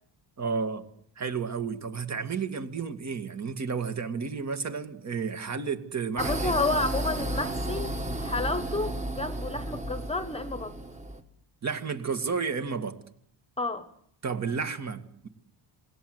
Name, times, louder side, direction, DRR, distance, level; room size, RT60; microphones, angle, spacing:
voice 1, 0.4-0.9 1.2-6.6 11.6-13.0 14.2-15.3, right 5 dB, 35° right, 8 dB, 2.2 m, -32 dB
voice 2, 6.2-10.8 13.6-13.9, left 2 dB, 15° left, 10 dB, 1.3 m, -30 dB
sound 1, 6.2-11.2, right 1 dB, 15° right, 1.9 m, -33 dB
27.5 x 20.0 x 8.1 m, 0.68 s
cardioid pair, 145°, 45 cm